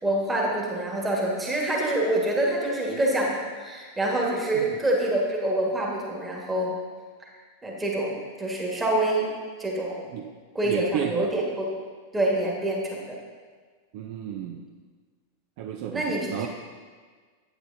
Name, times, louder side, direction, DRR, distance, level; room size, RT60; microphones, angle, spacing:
voice 1, 0.0-6.8 7.6-9.3 9.6-10.1 10.5-11.7 12.1-13.2 15.9-16.5, right 1 dB, 10° right, -2 dB, 1.5 m, -26 dB
voice 2, 10.6-11.3 13.9-14.6 15.6-16.5, right 9 dB, 45° right, 2 dB, 0.4 m, -32 dB
8.6 x 8.0 x 2.7 m, 1.5 s
figure-of-eight pair, 90°, 0 cm